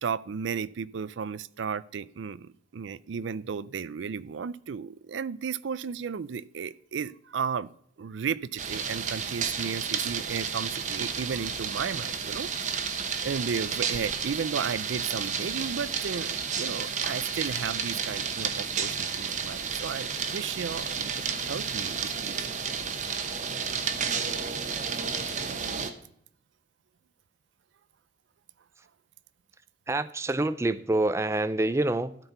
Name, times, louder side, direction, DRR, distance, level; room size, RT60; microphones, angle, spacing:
voice 1, 0.0-7.7 8.0-12.5 13.2-22.5, right 6 dB, 80° right, 18 dB, 0.4 m, -34 dB
sound 1, 8.6-25.9, right 6 dB, 40° right, 1.0 m, -31 dB
voice 2, 29.9-32.2, right 2 dB, 15° right, 14 dB, 0.4 m, -27 dB
12.5 x 4.5 x 6.7 m, 0.67 s
head